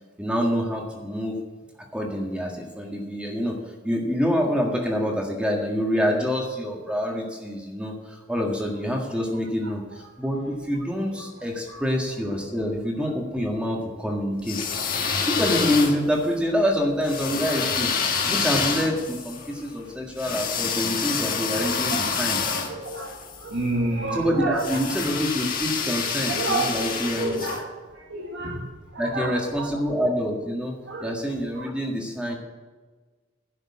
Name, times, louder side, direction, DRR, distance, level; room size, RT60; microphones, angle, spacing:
voice 1, 0.2-1.4 1.9-3.6 3.8-14.6 15.1-22.4 24.1-27.4 29.0-30.8 31.0-32.3, equal, 5° right, 0 dB, 1.7 m, -26 dB
voice 2, 11.1-11.9 12.6-12.7 19.6-19.7 21.5-24.8 25.8-27.7 27.9-29.8 30.9-31.1 31.6-31.7, right 2 dB, 70° right, -2 dB, 1.9 m, -31 dB
sound 1, 14.4-16.3 17.1-23.4 24.6-27.6, left 5 dB, 45° left, 1.6 m, -27 dB
11.0 x 6.6 x 8.5 m, 1.3 s
head